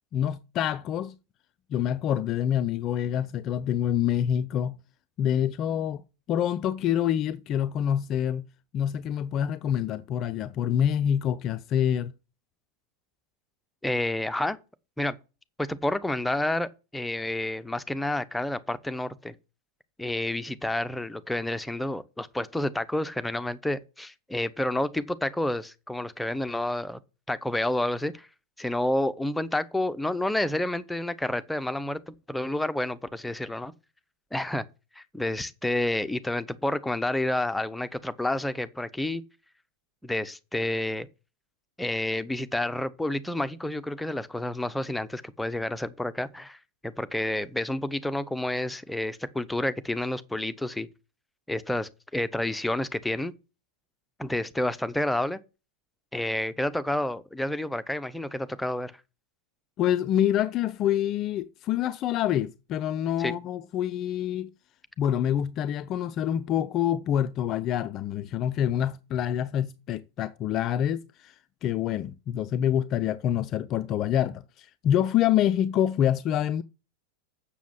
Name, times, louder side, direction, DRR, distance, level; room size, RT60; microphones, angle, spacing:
voice 1, 0.1-1.1 1.7-4.8 5.2-6.0 6.3-8.5 8.7-12.1 59.8-64.5 65.0-71.3 71.6-76.6, left 10 dB, 35° left, 0.5 m, -26 dB
voice 2, 13.8-14.6 15.0-15.2 15.6-19.3 20.0-27.0 27.3-28.3 28.6-33.7 34.3-34.6 35.0-39.2 40.0-41.1 41.8-46.6 46.8-50.9 51.5-53.3 54.2-55.4 56.1-58.9 63.2-63.4, left 1 dB, 5° left, 0.8 m, -29 dB
7.2 x 6.9 x 7.6 m
figure-of-eight pair, 90°, 0 cm